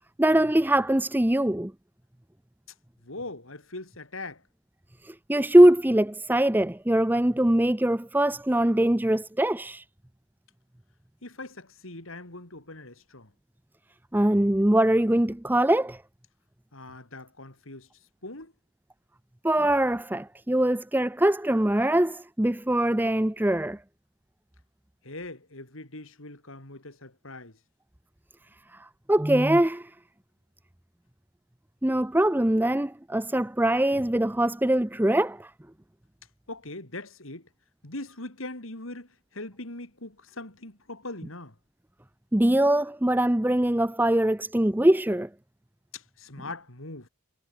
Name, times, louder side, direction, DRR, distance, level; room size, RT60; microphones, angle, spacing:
voice 1, 0.2-1.7 5.0-9.8 14.1-16.0 19.4-23.8 29.1-29.9 31.8-35.5 42.3-45.3, right 1 dB, 10° right, 0.6 m, -22 dB
voice 2, 3.0-4.4 11.2-13.3 16.7-17.9 18.2-18.5 25.0-27.6 36.5-37.5 37.8-41.5 45.9-47.1, left 2 dB, 65° left, 4.0 m, -41 dB
head